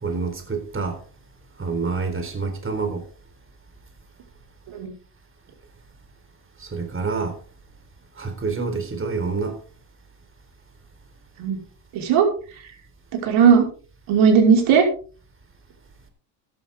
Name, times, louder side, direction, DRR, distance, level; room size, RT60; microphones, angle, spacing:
voice 1, 0.0-1.0 1.6-3.0 6.6-7.4 8.2-9.6, right 4 dB, 25° right, 4.0 m, -27 dB
voice 2, 11.9-12.3 13.2-13.7 14.1-14.9, right 6 dB, 70° right, 5.3 m, -16 dB
14.5 x 11.5 x 3.7 m
supercardioid pair, 90°, 49 cm